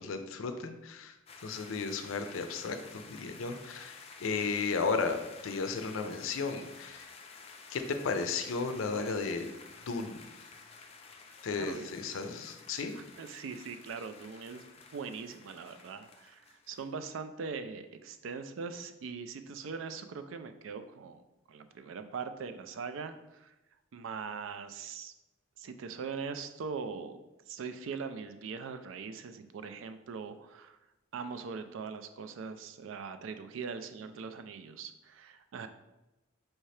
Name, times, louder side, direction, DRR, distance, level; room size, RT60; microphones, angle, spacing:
voice 1, 0.0-7.1 7.7-9.5 9.9-10.3 11.4-12.9, left 4 dB, 90° left, 8 dB, 0.4 m, -34 dB
sound 1, 1.3-16.9, left 4 dB, 30° left, 0.4 m, -52 dB
voice 2, 11.6-11.9 12.9-14.6 14.9-21.2 21.5-23.5 23.9-25.1 25.6-27.2 27.5-30.8 31.1-35.7, right 5 dB, 75° right, 10 dB, 0.4 m, -41 dB
4.5 x 2.7 x 3.2 m, 0.98 s
head